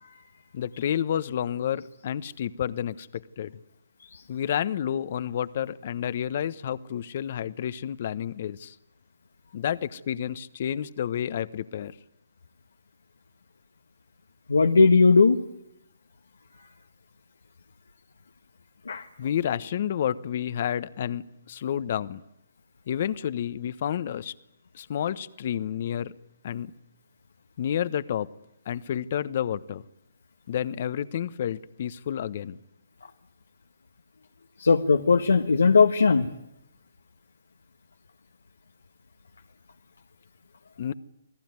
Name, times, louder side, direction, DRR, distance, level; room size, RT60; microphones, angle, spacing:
voice 1, 0.5-3.6 4.3-8.7 9.5-11.9 19.2-22.2 22.9-24.3 24.7-26.1 26.4-26.7 27.6-28.3 28.7-29.8 30.5-32.6 40.8-40.9, left 9 dB, 50° left, 15 dB, 1.1 m, -30 dB
voice 2, 14.5-15.4 18.9-19.1 34.6-36.3, left 4 dB, 80° left, 5 dB, 1.5 m, -18 dB
28.0 x 18.0 x 9.6 m, 0.82 s
hypercardioid pair, 145°, 0 cm